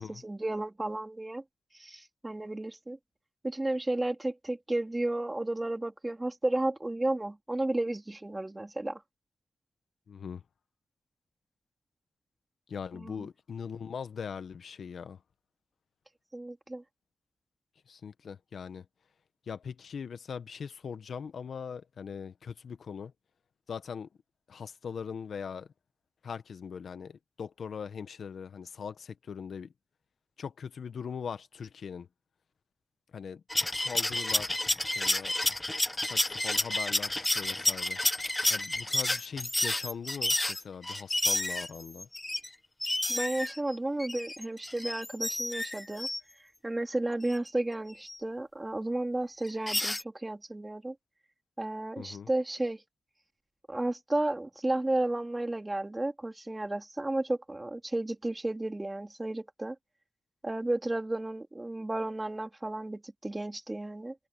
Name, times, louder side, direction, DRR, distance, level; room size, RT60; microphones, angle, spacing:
voice 1, 0.0-1.4 1.7-3.0 3.4-9.0 12.9-13.3 16.3-16.8 43.1-46.1 46.6-50.9 51.6-52.8 53.7-59.8 60.4-64.2, right 2 dB, 25° right, 3.1 m, -33 dB
voice 2, 10.1-10.4 12.7-15.2 17.9-18.8 19.5-23.1 23.7-24.1 24.5-25.7 26.2-29.7 30.4-32.1 33.1-33.4 33.7-34.7 34.9-35.3 36.0-38.0 38.5-42.1 52.0-52.3, left 6 dB, 75° left, 1.4 m, -40 dB
sound 1, 33.5-42.5 42.8-46.2 47.3-47.4 48.1-48.2 49.4-50.0, left 1 dB, 20° left, 1.2 m, -30 dB
cardioid pair, 50°, 0 cm